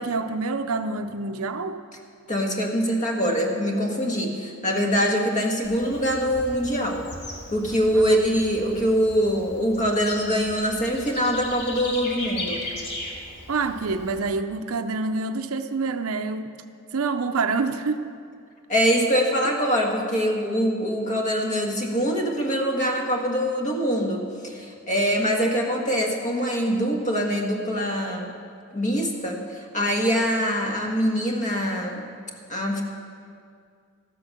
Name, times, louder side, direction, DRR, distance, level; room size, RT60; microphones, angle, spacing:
voice 1, 0.0-1.8 7.9-8.2 13.5-16.5 16.9-18.1, right 4 dB, 80° right, 8 dB, 0.6 m, -27 dB
voice 2, 2.3-7.1 7.5-12.6 18.7-28.3 28.7-32.1 32.5-32.8, equal, 35° left, 1 dB, 1.7 m, -24 dB
Bird / Insect, 5.6-14.2, left 1 dB, 50° left, 2.1 m, -38 dB
14.0 x 8.3 x 6.5 m, 2.3 s
head